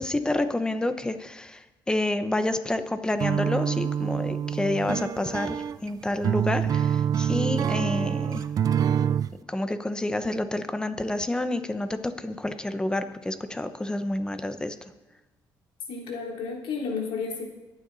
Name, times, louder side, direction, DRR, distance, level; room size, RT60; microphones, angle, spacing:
voice 1, 0.0-8.5 9.5-14.8, left 1 dB, 10° left, 9 dB, 0.9 m, -29 dB
off timing abstract strum, 3.2-9.3, right 8 dB, 45° right, 0.4 m, -26 dB
voice 2, 15.9-17.5, left 5 dB, 85° left, 0 dB, 3.3 m, -32 dB
24.0 x 9.3 x 4.1 m, 1.1 s
cardioid pair, 130°, 8 cm